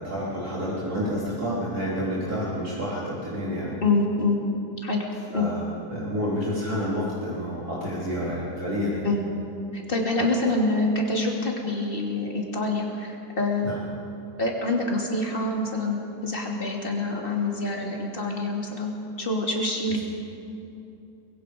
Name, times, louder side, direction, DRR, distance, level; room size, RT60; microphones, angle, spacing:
voice 1, 0.0-3.8 5.3-5.6 5.9-9.1 10.1-10.2 13.6-13.8, equal, 65° right, -8 dB, 4.1 m, -29 dB
voice 2, 3.8-4.4 4.8-5.1 5.3-5.5 9.0-9.2 9.7-13.7 14.4-18.9 19.2-20.0, left 2 dB, 35° left, -1 dB, 3.0 m, -26 dB
24.5 x 21.0 x 5.2 m, 2.8 s
omnidirectional pair, 1.7 m